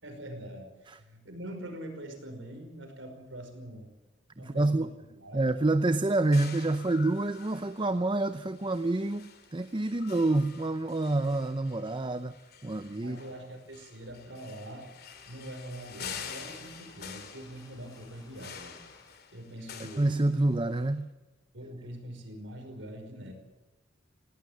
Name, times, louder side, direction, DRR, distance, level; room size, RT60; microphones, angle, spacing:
voice 1, 0.0-3.9 4.4-4.9 5.2-5.5 13.0-14.9 15.3-18.8 19.3-20.1 21.5-23.3, right 1 dB, 75° right, 5 dB, 5.4 m, -43 dB
voice 2, 4.4-4.9 5.3-12.4 12.6-13.2 20.0-21.1, right 2 dB, 25° right, 12 dB, 0.7 m, -27 dB
sound 1, 6.3-20.8, left 7 dB, 55° left, 2.5 m, -47 dB
sound 2, 15.1-19.3, left 1 dB, 20° left, 4.5 m, -59 dB
19.0 x 17.5 x 8.8 m, 1.1 s
head